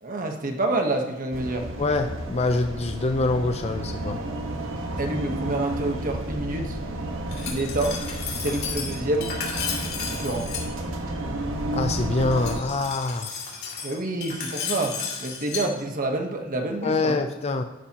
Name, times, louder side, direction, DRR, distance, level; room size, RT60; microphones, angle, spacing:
voice 1, 0.0-1.7 5.0-6.8 7.5-8.0 8.4-9.3 10.1-10.5 13.8-17.2, right 2 dB, 45° right, 4 dB, 1.2 m, -28 dB
sound 1, 1.3-12.6, right 1 dB, 85° right, 1.4 m, -31 dB
voice 2, 1.8-4.2 11.7-13.3 16.8-17.6, left 3 dB, 35° left, 6 dB, 0.5 m, -25 dB
Glass, 7.3-10.6 12.3-15.6, left 6 dB, 55° left, 2.9 m, -33 dB
12.5 x 11.5 x 2.9 m, 1.2 s
head